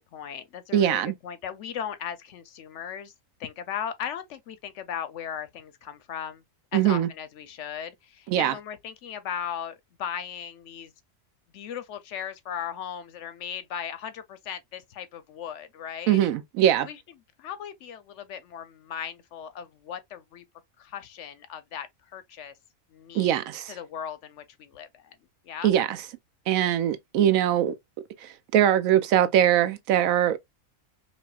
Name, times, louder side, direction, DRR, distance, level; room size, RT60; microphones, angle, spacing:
voice 1, 0.0-3.1 3.4-6.4 6.7-10.9 11.5-16.2 16.8-17.0 17.4-20.4 20.8-22.5 22.9-23.4 23.7-25.2 25.4-25.7, left 8 dB, 70° left, 0.8 m, -37 dB
voice 2, 0.7-1.1 6.7-7.1 8.3-8.5 16.1-16.9 23.1-23.7 25.6-26.0 26.5-27.7 28.2-30.4, right 11 dB, 85° right, 1.0 m, -22 dB
5.2 x 2.3 x 2.3 m
omnidirectional pair, 1.4 m